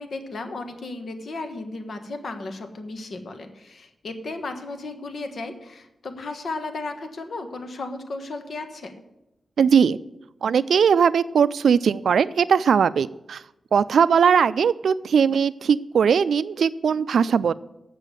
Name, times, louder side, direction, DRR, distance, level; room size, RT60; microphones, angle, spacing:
voice 1, 0.0-8.9, left 2 dB, 65° left, 7 dB, 1.3 m, -34 dB
voice 2, 9.6-10.0 10.4-13.4 13.7-17.5, right 7 dB, 85° right, 17 dB, 0.3 m, -19 dB
8.2 x 6.8 x 8.1 m, 0.91 s
wide cardioid pair, 95°, 0 cm